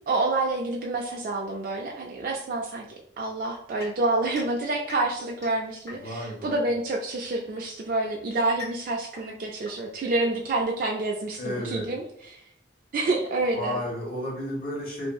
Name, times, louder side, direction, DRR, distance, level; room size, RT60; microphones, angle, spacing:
voice 1, 0.1-2.9 3.2-12.4 12.9-13.8, right 2 dB, 50° right, -1 dB, 0.3 m, -28 dB
sound 1, 3.8-6.4 7.4-10.8, left 4 dB, 20° left, 1.1 m, -46 dB
voice 2, 6.0-6.6 11.4-11.9 13.5-15.1, equal, 50° left, -4 dB, 1.1 m, -32 dB
2.8 x 2.6 x 2.2 m, 0.69 s
head